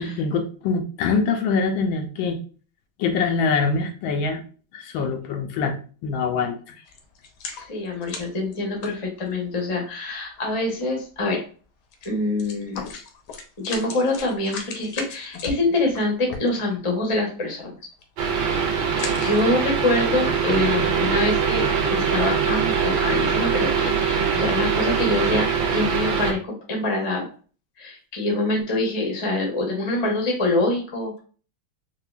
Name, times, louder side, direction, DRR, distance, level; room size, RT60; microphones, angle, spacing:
voice 1, 0.0-2.4 3.0-4.4 4.7-5.8 6.0-6.7 12.8-12.9, left 4 dB, 85° left, 6 dB, 1.4 m, -24 dB
sound 1, 6.9-9.6 10.4-10.5 10.8-10.9 11.9-12.1 12.4-16.9 17.4-17.6 17.9-18.3 18.8-19.8 20.2-20.3, left 4 dB, 70° left, 1.1 m, -37 dB
voice 2, 7.6-11.4 12.0-12.9 13.6-17.7 18.6-18.8 19.2-27.3 27.8-31.2, left 2 dB, 35° left, 0 dB, 0.5 m, -25 dB
sound 2, 18.2-26.3, right 6 dB, 85° right, 1.5 m, -22 dB
4.6 x 2.3 x 2.3 m, 0.39 s
omnidirectional pair, 2.1 m